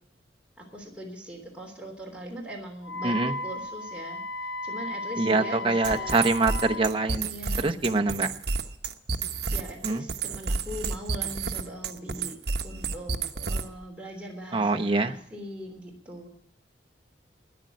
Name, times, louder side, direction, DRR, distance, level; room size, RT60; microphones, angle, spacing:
voice 1, 0.6-4.2 4.6-6.2 7.3-8.4 9.5-12.4 12.6-16.3, equal, 5° right, -1 dB, 3.2 m, -41 dB
Wind instrument woodwind instrument, 2.8-6.9, left 3 dB, 85° left, 1.1 m, -35 dB
voice 2, 3.0-3.4 5.2-7.3 7.6-8.3 9.8-10.1 14.5-15.2, right 3 dB, 30° right, 5 dB, 0.9 m, -25 dB
sound 1, 5.8-13.8, right 4 dB, 60° right, 1.0 m, -30 dB
13.5 x 10.5 x 7.7 m, 0.69 s
head